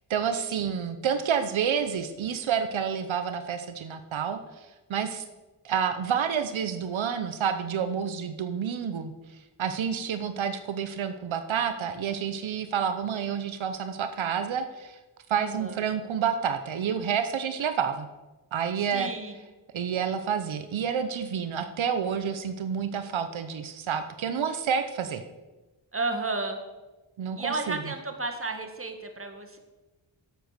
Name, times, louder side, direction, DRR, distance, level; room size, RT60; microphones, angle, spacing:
voice 1, 0.1-5.2 5.6-9.1 9.6-15.0 15.3-18.1 18.5-19.1 19.7-25.2 27.2-27.8, right 7 dB, 85° right, 9 dB, 0.9 m, -29 dB
voice 2, 15.4-15.8 18.8-19.4 25.9-26.6 27.4-29.6, right 3 dB, 30° right, 5 dB, 2.0 m, -32 dB
11.0 x 8.0 x 6.7 m, 1.1 s
cardioid pair, 60°, 46 cm